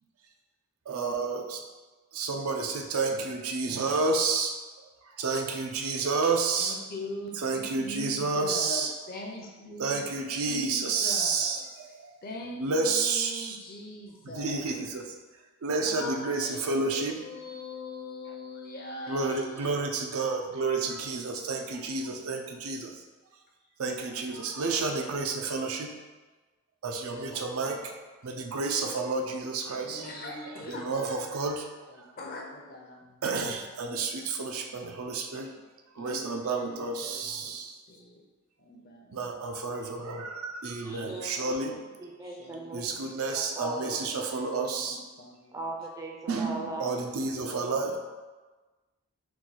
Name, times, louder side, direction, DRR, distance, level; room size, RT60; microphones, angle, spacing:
voice 1, 0.9-1.6 2.1-4.5 5.2-6.8 7.4-8.9 9.8-12.1 12.6-13.6 14.3-15.2 15.6-17.2 19.1-23.0 23.8-26.0 26.8-28.0 28.2-30.2 30.7-31.7 32.0-32.1 33.2-35.5 35.9-37.8 39.1-41.8 42.7-45.0 46.3-48.0, right 4 dB, 75° right, 3 dB, 0.5 m, -30 dB
voice 2, 6.6-11.6 12.2-14.6 15.8-19.9 24.3-24.9 27.1-27.8 29.8-31.2 31.8-33.1 35.9-36.8 37.0-37.6 37.9-38.2 38.6-39.5 40.8-41.8 42.2-42.7 44.0-45.6 46.8-48.0, left 2 dB, 40° left, 0 dB, 0.6 m, -43 dB
voice 3, 40.8-41.6 42.0-44.0 45.5-47.0, right 2 dB, 15° right, 0 dB, 0.4 m, -39 dB
4.5 x 2.2 x 4.0 m, 1.3 s
head